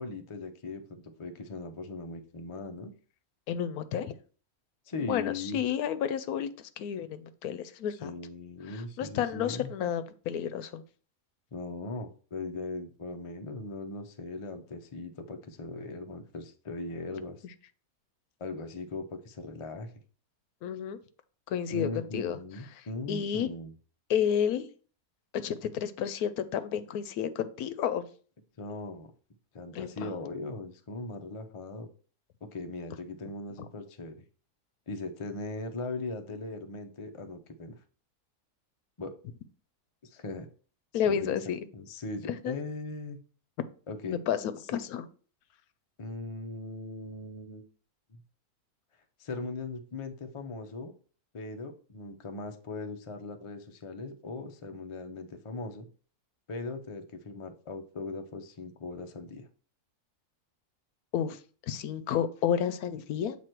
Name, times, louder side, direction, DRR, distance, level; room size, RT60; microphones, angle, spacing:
voice 1, 0.0-2.9 4.9-5.6 7.9-9.7 11.5-17.4 18.4-19.9 21.7-23.7 28.6-29.1 29.5-31.9 32.4-34.2 34.9-37.8 39.0-39.2 40.0-40.5 41.1-41.3 41.7-43.2 43.9-44.2 46.0-47.7 48.1-48.2 49.2-50.9 51.3-55.9 56.5-59.5, left 3 dB, 55° left, 6 dB, 0.3 m, -39 dB
voice 2, 3.5-4.2 5.0-8.1 8.7-10.8 20.6-21.0 21.5-22.4 23.1-23.5 24.1-24.7 25.3-28.1 29.7-30.1 40.9-41.6 42.3-42.6 44.1-45.1 61.1-61.4 61.7-63.4, left 9 dB, 75° left, 13 dB, 1.0 m, -31 dB
7.8 x 3.0 x 4.4 m, 0.41 s
omnidirectional pair, 1.6 m